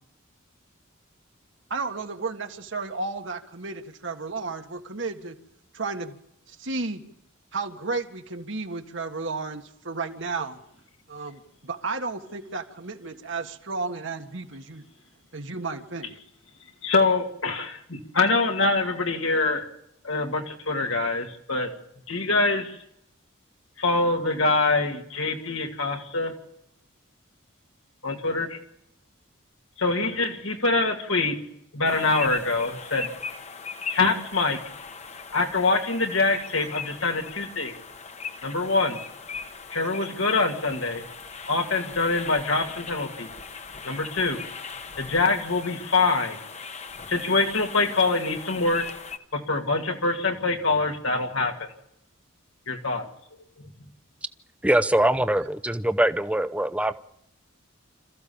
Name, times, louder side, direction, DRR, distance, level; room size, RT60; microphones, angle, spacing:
voice 1, 1.7-5.4 5.7-6.2 6.5-7.0 7.5-10.6 11.1-14.9 15.3-16.2, right 3 dB, 65° right, 5 dB, 1.7 m, -33 dB
voice 2, 16.8-19.6 20.0-21.7 22.1-22.8 23.8-26.3 28.0-28.5 29.8-31.4 31.7-33.1 33.9-34.6 35.3-37.7 38.4-39.0 39.7-41.1 41.5-43.3 43.8-44.4 45.0-46.4 47.1-48.9 49.3-51.5 52.7-53.1, left 3 dB, 80° left, 3 dB, 2.5 m, -24 dB
sound 1, 31.8-49.2, left 5 dB, 35° left, 1.2 m, -39 dB
voice 3, 54.6-56.9, right 1 dB, 5° right, 12 dB, 0.7 m, -22 dB
27.0 x 14.5 x 7.1 m, 0.79 s
head